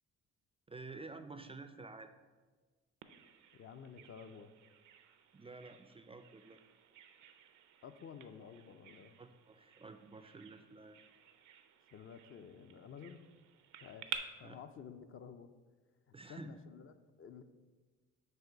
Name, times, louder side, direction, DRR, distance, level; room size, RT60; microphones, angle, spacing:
voice 1, 0.7-2.1 4.0-4.1 5.3-6.6 9.2-11.0 14.4-14.6 16.1-16.6, right 3 dB, 20° right, 8 dB, 0.3 m, -51 dB
Bird vocalization bird call bird song, 3.0-14.2, right 10 dB, 75° right, 0.6 m, -52 dB
voice 2, 3.5-4.5 7.8-9.2 11.9-13.3 13.8-15.5 16.1-17.4, left 7 dB, 45° left, 9 dB, 0.5 m, -52 dB
7.7 x 2.6 x 5.6 m, 1.3 s
cardioid pair, 90°, 30 cm